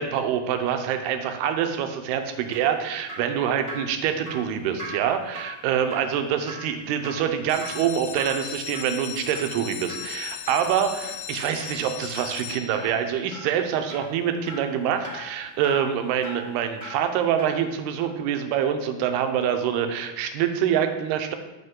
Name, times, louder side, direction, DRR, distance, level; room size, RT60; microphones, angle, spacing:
voice 1, 0.0-21.4, right 8 dB, 85° right, 7 dB, 2.7 m, -25 dB
Drip, 2.2-17.7 18.0-18.1, equal, 5° left, 1.4 m, -42 dB
sound 1, 7.4-13.1 13.7-14.2 14.6-14.7 15.0-15.1 15.5-15.6, left 11 dB, 80° left, 2.1 m, -37 dB
7.9 x 6.0 x 3.7 m, 1.0 s
omnidirectional pair, 4.5 m